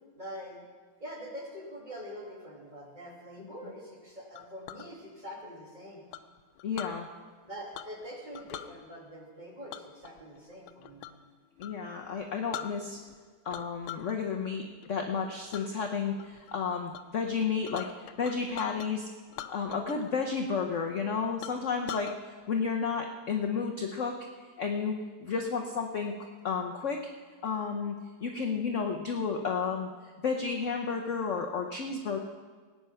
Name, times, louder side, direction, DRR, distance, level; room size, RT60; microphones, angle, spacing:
voice 1, 0.1-0.6 1.0-6.0 7.4-11.0, equal, 20° right, -2 dB, 2.6 m, -44 dB
Chink clink, 4.4-4.9 6.1-7.0 7.7-8.1 8.3-8.7 9.7-11.2 11.6-11.8 12.2-12.3 12.5-13.2 13.5-14.1 14.5-14.9 15.5-15.7 16.2-16.5 16.9-17.0 17.3-18.9 19.3-20.1 20.4-20.5 21.0-21.1 21.4-22.2, left 12 dB, 90° left, 1.5 m, -42 dB
voice 2, 6.6-7.1 11.6-13.0 13.4-17.9 18.2-19.1 19.5-22.1 22.5-24.2 24.6-26.1 26.4-27.0 27.4-27.9 28.2-29.9 30.2-32.2, left 5 dB, 55° left, 3 dB, 0.9 m, -32 dB
19.0 x 9.2 x 5.7 m, 1.5 s
omnidirectional pair, 2.2 m